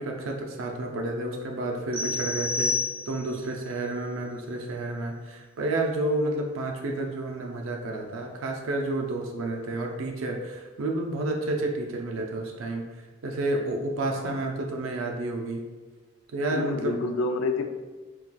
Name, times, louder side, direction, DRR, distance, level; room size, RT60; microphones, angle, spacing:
voice 1, 0.0-2.7 3.1-15.6 16.3-17.0, right 2 dB, 85° right, 1 dB, 0.4 m, -30 dB
sound 1, 1.9-3.4, left 4 dB, 10° right, 1.3 m, -29 dB
voice 2, 16.5-17.7, left 3 dB, 80° left, 5 dB, 0.3 m, -29 dB
3.8 x 2.3 x 2.2 m, 1.3 s
head